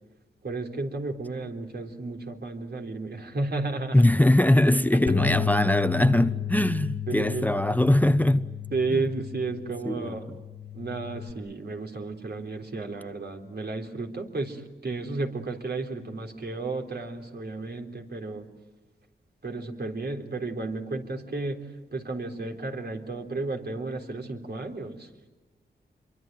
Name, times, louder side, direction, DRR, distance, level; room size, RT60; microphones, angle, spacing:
voice 1, 0.4-4.0 7.1-7.5 8.7-10.2 10.7-18.5 19.4-21.6 21.9-25.1, right 3 dB, 60° right, 3.7 m, -33 dB
voice 2, 3.9-8.5 8.9-9.0 9.8-10.4, left 1 dB, 10° left, 0.9 m, -22 dB
Bass guitar, 5.1-11.3, left 8 dB, 55° left, 1.9 m, -33 dB
27.5 x 23.5 x 9.2 m
wide cardioid pair, 70°, 18 cm